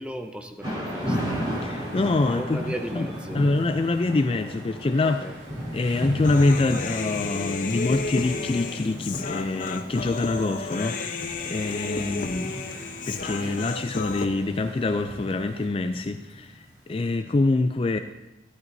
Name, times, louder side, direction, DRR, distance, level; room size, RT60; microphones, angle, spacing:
voice 1, 0.0-1.3 2.4-3.4 5.0-5.3, right 1 dB, 5° right, 0.7 m, -36 dB
Thunder / Rain, 0.6-16.6, equal, 25° right, 2.9 m, -35 dB
sound 1, 0.9-15.7, right 1 dB, 65° right, 2.5 m, -46 dB
voice 2, 1.6-3.1 3.3-5.2 5.7-12.6 13.1-18.0, left 2 dB, 30° left, 0.3 m, -25 dB
Human voice, 6.2-14.3, left 4 dB, 45° left, 0.7 m, -32 dB
14.5 x 12.0 x 2.7 m
head